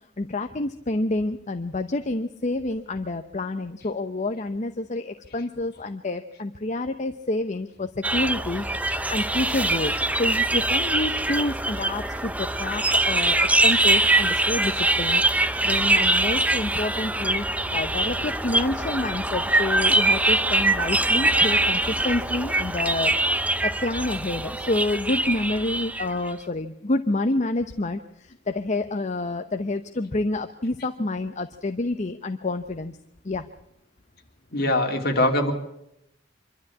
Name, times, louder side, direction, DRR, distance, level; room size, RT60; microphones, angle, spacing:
voice 1, 0.2-8.6 9.1-17.5 17.7-23.1 23.6-33.0 33.2-33.4, left 2 dB, 40° left, 7 dB, 0.8 m, -28 dB
sound 1, 8.0-26.3, right 2 dB, 10° right, 0.7 m, -23 dB
voice 2, 34.5-35.5, left 1 dB, 55° left, 3 dB, 3.1 m, -22 dB
25.0 x 12.5 x 8.5 m, 0.82 s
head